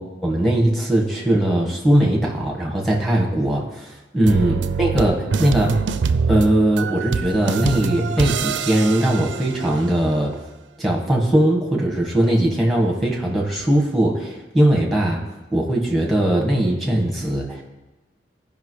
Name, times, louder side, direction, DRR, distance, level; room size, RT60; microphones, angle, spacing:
voice 1, 0.2-5.7 6.3-10.4 10.8-15.2 15.5-17.6, right 1 dB, ahead, -2 dB, 1.4 m, -20 dB
sound 1, 4.2-10.0, right 5 dB, 85° right, 0.4 m, -24 dB
15.5 x 5.4 x 3.2 m, 1.1 s
head